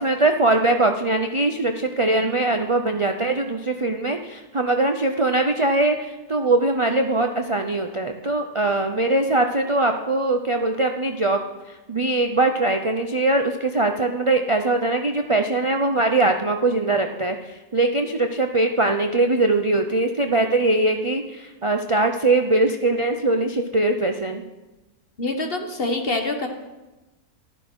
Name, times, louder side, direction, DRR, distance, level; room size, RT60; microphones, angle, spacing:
voice 1, 0.0-11.4 11.7-24.4, right 2 dB, 35° right, 5 dB, 0.5 m, -21 dB
voice 2, 25.2-26.5, left 2 dB, 35° left, 4 dB, 1.6 m, -25 dB
14.0 x 12.0 x 6.3 m, 1.1 s
omnidirectional pair, 1.8 m